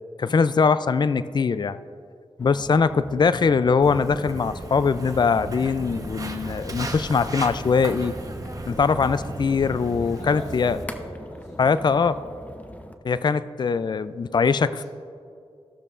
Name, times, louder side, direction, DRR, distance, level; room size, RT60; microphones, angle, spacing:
voice 1, 0.2-1.8 2.4-8.2 8.7-10.8 11.6-12.1 13.0-14.8, left 5 dB, 40° left, 14 dB, 0.3 m, -22 dB
sound 1, 2.4-13.0, left 1 dB, 15° left, 0.7 m, -42 dB
Walk footsteps, 3.8-10.8, right 1 dB, 30° right, 1.0 m, -35 dB
voice 2, 10.1-12.3 14.6-14.8, left 1 dB, 90° left, -6 dB, 1.9 m, -40 dB
15.5 x 6.6 x 2.5 m, 2.4 s
cardioid pair, 40°, 11 cm